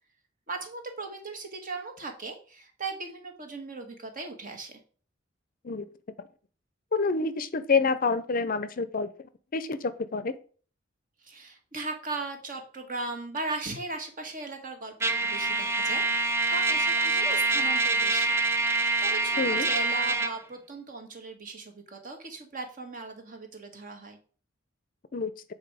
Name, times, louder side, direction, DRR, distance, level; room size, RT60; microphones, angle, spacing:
voice 1, 0.5-4.8 11.2-18.3 19.0-24.2, right 3 dB, 45° right, 5 dB, 1.5 m, -38 dB
voice 2, 6.9-9.1 9.5-10.3 19.4-19.7 25.1-25.3, left 4 dB, 45° left, 13 dB, 0.6 m, -27 dB
Trumpet, 15.0-20.3, right 3 dB, 15° right, 0.6 m, -25 dB
8.0 x 4.3 x 4.8 m, 0.41 s
head